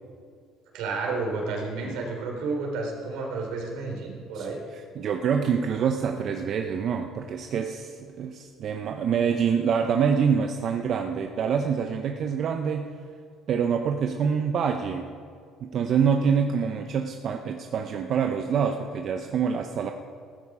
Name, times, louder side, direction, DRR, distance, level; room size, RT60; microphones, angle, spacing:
voice 1, 0.7-4.6, right 3 dB, 80° right, 0 dB, 3.6 m, -31 dB
voice 2, 4.7-12.9 13.5-15.1 15.6-19.9, right 7 dB, 50° right, 5 dB, 0.7 m, -26 dB
15.0 x 12.5 x 4.9 m, 2.2 s
cardioid pair, 120°, 0 cm